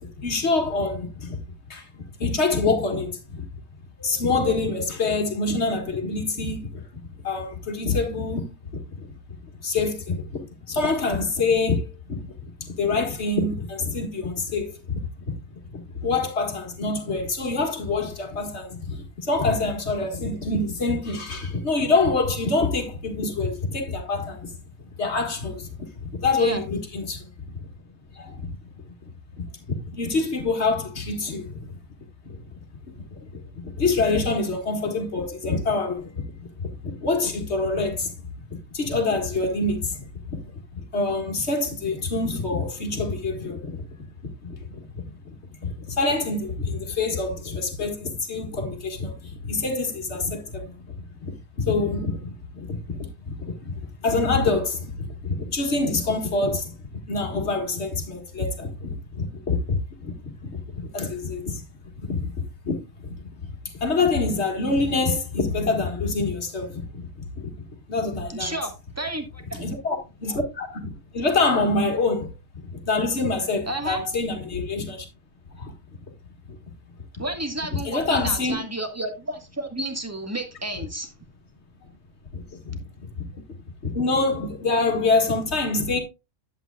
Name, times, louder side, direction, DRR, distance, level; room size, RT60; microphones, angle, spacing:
voice 1, 0.2-1.4 1.7-1.9 2.2-3.4 4.0-6.8 7.2-8.5 8.9-9.0 9.6-10.4 10.7-12.3 12.6-15.0 15.3-15.4 15.7-24.5 25.0-25.7 26.0-27.2 27.6-27.7 28.1-28.5 29.4-31.7 32.2-32.4 33.2-36.2 36.8-38.1 38.5-40.4 40.8-43.9 44.4-50.7 51.2-56.7 57.0-61.6 62.0-62.3 62.6-62.8 63.0-67.5 67.9-68.5 69.6-72.3 72.7-75.1 75.6-75.7 76.5-76.6 77.7-78.6 82.3-83.2 83.8-86.0, left 3 dB, 50° left, 2.0 m, -26 dB
voice 2, 68.3-69.7 73.7-74.0 77.2-81.1, right 1 dB, 10° right, 1.4 m, -31 dB
11.0 x 8.4 x 2.3 m
omnidirectional pair, 1.5 m